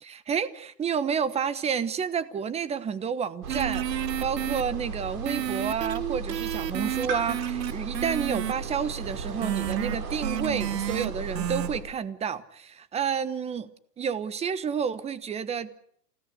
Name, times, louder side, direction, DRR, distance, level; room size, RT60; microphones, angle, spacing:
voice 1, 0.0-13.7 14.0-15.8, right 7 dB, 15° right, 1.1 m, -30 dB
sound 1, 3.4-11.8, right 4 dB, 65° right, 5.9 m, -35 dB
sound 2, 3.5-4.6 5.3-11.1 11.3-11.7, right 11 dB, 80° right, 1.4 m, -31 dB
28.0 x 17.0 x 8.3 m
hypercardioid pair, 130°, 49 cm